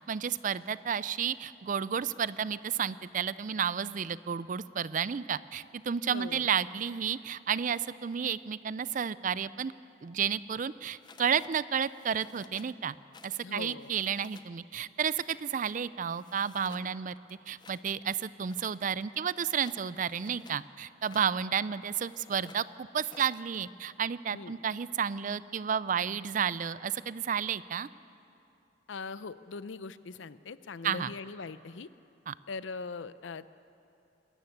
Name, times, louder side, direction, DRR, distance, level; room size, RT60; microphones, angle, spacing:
voice 1, 0.0-9.7 10.0-12.9 13.2-17.2 17.5-27.9 30.8-31.1 32.3-32.4, right 7 dB, 45° right, 17 dB, 0.4 m, -32 dB
voice 2, 6.0-6.5 13.4-13.9 16.6-16.9 24.3-24.5 28.9-31.9 32.5-33.4, left 4 dB, 75° left, 15 dB, 0.6 m, -41 dB
sound 1, 11.0-11.5 11.8-12.7 13.1-13.5 13.7-14.5 15.0-15.8 16.1-16.9 17.2-17.8 18.4-20.6 20.9-21.3 22.0-22.6 23.0-23.4, left 4 dB, 25° left, 0.6 m, -56 dB
22.0 x 13.5 x 9.4 m, 2.7 s
head